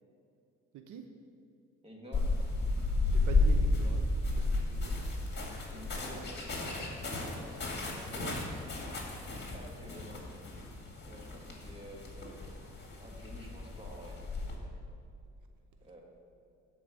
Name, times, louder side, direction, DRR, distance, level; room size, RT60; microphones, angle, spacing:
voice 1, 0.7-1.1 3.1-5.0 7.7-8.5, right 7 dB, 80° right, 6 dB, 0.7 m, -46 dB
voice 2, 1.8-2.3 5.7-7.4 9.5-10.2 11.1-12.5 13.0-14.2 15.8-16.0, equal, 20° right, -2 dB, 2.1 m, -50 dB
sound 1, 2.1-14.6, left 2 dB, 35° left, 2.1 m, -33 dB
10.5 x 4.7 x 6.7 m, 2.5 s
cardioid pair, 90°, 30 cm